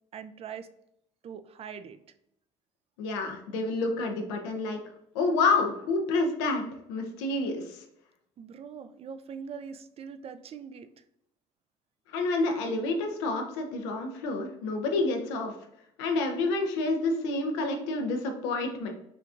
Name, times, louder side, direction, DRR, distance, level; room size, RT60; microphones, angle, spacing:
voice 1, 0.1-0.7 1.2-2.0 8.4-11.0, right 7 dB, 45° right, 10 dB, 0.4 m, -42 dB
voice 2, 3.0-4.8 5.1-6.6 6.9-7.8 12.1-15.5 16.0-18.9, left 3 dB, 85° left, 4 dB, 0.7 m, -28 dB
5.8 x 2.4 x 2.5 m, 0.78 s
hypercardioid pair, 65°, 14 cm